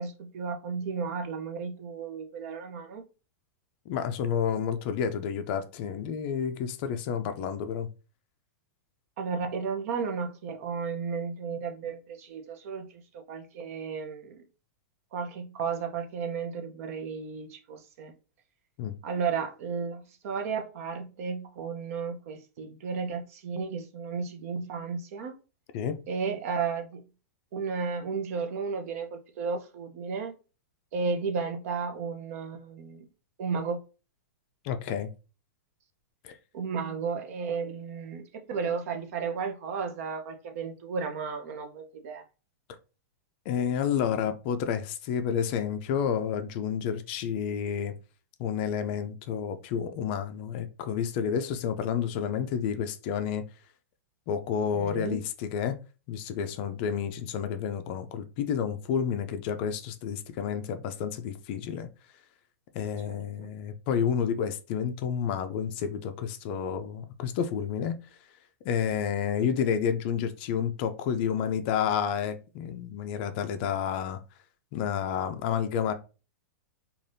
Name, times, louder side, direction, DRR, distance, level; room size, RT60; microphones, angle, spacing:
voice 1, 0.0-3.0 9.2-14.4 15.1-18.1 19.0-25.4 26.1-27.0 27.5-30.3 30.9-33.1 33.4-33.8 36.5-42.2 54.7-55.2 63.1-63.5, right 5 dB, 55° right, 0.6 m, -33 dB
voice 2, 3.9-7.9 18.8-18.9 25.7-26.0 34.6-35.1 36.2-36.4 43.5-47.9 48.4-53.4 54.3-55.8 56.1-61.9 62.7-68.0 68.6-74.2 74.7-75.9, left 8 dB, 40° left, 0.4 m, -30 dB
3.2 x 2.3 x 2.6 m
supercardioid pair, 155°, 9 cm